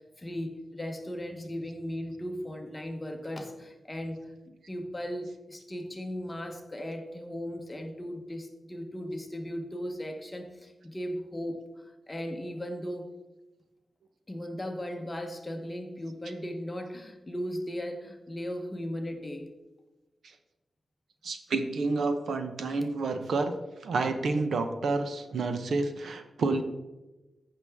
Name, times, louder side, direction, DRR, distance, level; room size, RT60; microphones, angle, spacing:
voice 1, 0.0-4.2 4.7-13.1 14.3-19.5, equal, 15° left, 4 dB, 1.1 m, -37 dB
voice 2, 21.2-23.5 23.8-26.6, right 3 dB, 85° right, 8 dB, 0.9 m, -29 dB
14.5 x 5.8 x 3.5 m, 1.1 s
wide cardioid pair, 160°, 0 cm